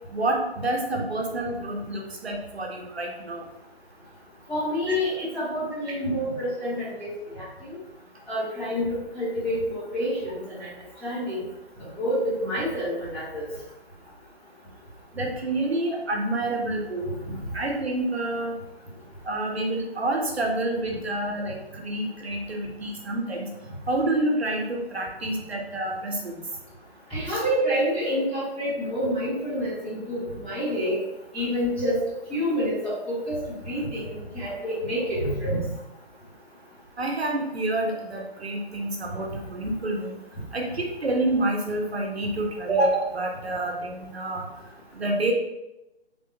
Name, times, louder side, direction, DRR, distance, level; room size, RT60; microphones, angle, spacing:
voice 1, 0.1-3.5 4.9-5.0 15.1-17.2 17.5-18.6 19.2-23.5 23.9-26.4 27.3-27.4 37.0-40.1 40.5-44.5 44.9-45.3, right 2 dB, 75° right, 1 dB, 0.9 m, -28 dB
voice 2, 4.5-7.8 8.3-10.7 11.0-11.4 12.0-13.4 17.2-17.4 27.1-31.0 31.3-32.0 32.3-34.1 34.3-35.6, equal, 5° left, -14 dB, 1.4 m, -28 dB
3.6 x 3.4 x 2.9 m, 0.94 s
figure-of-eight pair, 145°, 32 cm